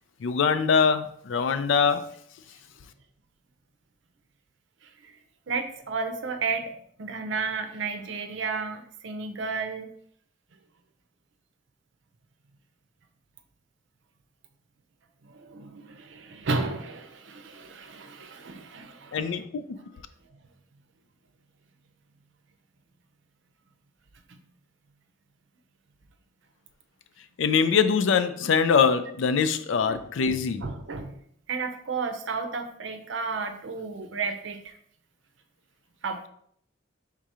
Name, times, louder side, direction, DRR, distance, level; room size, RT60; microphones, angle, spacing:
voice 1, 0.2-2.1 19.1-19.8 27.4-30.7, left 6 dB, 75° left, 0.4 m, -23 dB
voice 2, 4.8-5.1 5.5-9.9 15.2-19.3 24.3-24.4 29.9-30.0 30.6-31.1 31.5-34.7 36.0-36.2, right 4 dB, 70° right, 0.6 m, -33 dB
3.6 x 2.8 x 4.8 m
head